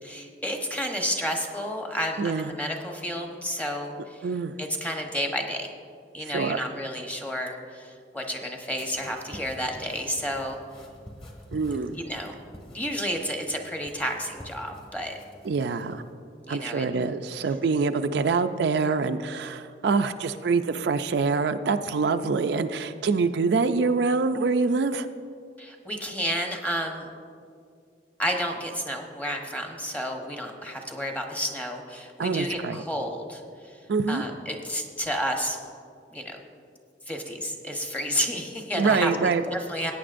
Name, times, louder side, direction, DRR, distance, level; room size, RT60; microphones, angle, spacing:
voice 1, 0.0-4.3 4.6-5.7 6.1-10.6 11.9-12.4 12.7-15.1 16.4-16.9 25.6-27.1 28.2-33.8 34.1-35.6 36.1-36.4 37.1-39.9, equal, 10° left, 2 dB, 1.0 m, -31 dB
voice 2, 2.2-2.5 4.2-4.5 6.3-6.6 11.5-12.0 15.4-16.0 16.5-25.1 32.2-32.8 33.9-34.2 38.7-39.4, right 4 dB, 65° right, 8 dB, 0.4 m, -25 dB
sound 1, 8.8-16.1, equal, 30° left, 1.6 m, -48 dB
17.0 x 9.2 x 2.6 m, 2.3 s
head